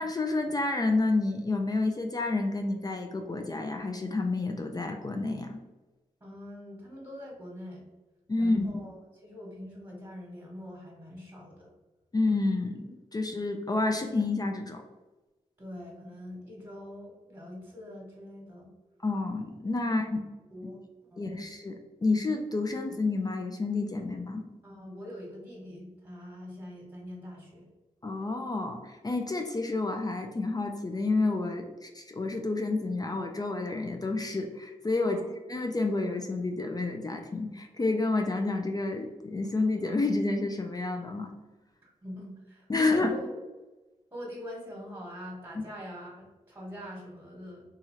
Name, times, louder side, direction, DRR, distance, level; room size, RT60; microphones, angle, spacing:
voice 1, 0.0-5.6 8.3-8.8 12.1-14.8 19.0-20.2 21.2-24.4 28.0-35.2 35.5-41.3 42.7-43.1, left 3 dB, 30° left, 3 dB, 0.4 m, -29 dB
voice 2, 6.2-7.8 8.4-11.7 15.6-18.7 19.8-20.0 20.5-20.8 21.1-21.4 24.6-27.7 35.0-35.3 41.8-43.4 44.1-47.6, left 1 dB, 15° right, -3 dB, 1.2 m, -44 dB
2.8 x 2.4 x 3.0 m, 1.1 s
cardioid pair, 45°, 13 cm